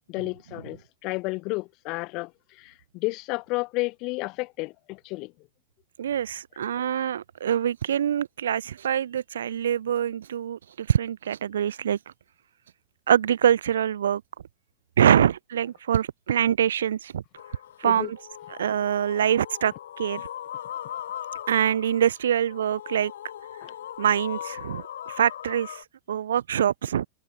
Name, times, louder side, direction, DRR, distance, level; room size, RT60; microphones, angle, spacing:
voice 1, 0.1-0.8 1.0-2.3 2.6-5.3 17.8-18.1 23.6-23.7, left 24 dB, 40° left, 0.9 m, -31 dB
voice 2, 6.0-12.0 13.1-14.2 15.0-17.2 17.8-18.2 18.5-20.3 21.5-23.1 24.0-27.1, right 9 dB, 65° right, 0.5 m, -24 dB
sound 1, 17.4-25.8, left 11 dB, 60° left, 2.7 m, -39 dB
figure-of-eight pair, 90°, 0 cm